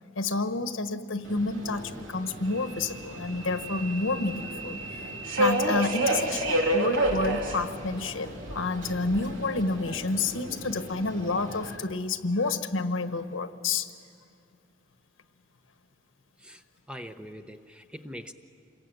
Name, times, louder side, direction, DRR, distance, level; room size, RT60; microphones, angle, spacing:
voice 1, 0.1-5.1 5.4-13.9, left 3 dB, 75° left, 9 dB, 1.3 m, -29 dB
Subway metro underground, 1.2-11.8, right 1 dB, 75° right, 3.1 m, -31 dB
voice 2, 16.9-18.3, equal, 5° right, 7 dB, 0.9 m, -42 dB
27.0 x 22.5 x 9.1 m, 2.3 s
head